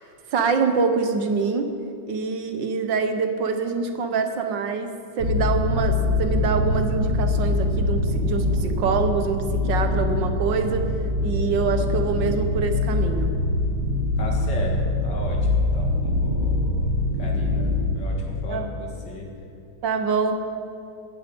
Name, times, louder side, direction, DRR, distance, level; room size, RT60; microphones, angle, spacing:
voice 1, 0.3-1.7 2.1-10.9 11.2-13.4 18.5-18.7 19.8-20.4, right 5 dB, 65° right, 7 dB, 1.7 m, -25 dB
sound 1, 5.2-18.1, left 2 dB, 90° right, 2.4 m, -23 dB
voice 2, 14.2-16.9 17.2-19.3, left 2 dB, 60° left, 0 dB, 2.8 m, -35 dB
12.5 x 8.8 x 8.8 m, 2.7 s
omnidirectional pair, 2.2 m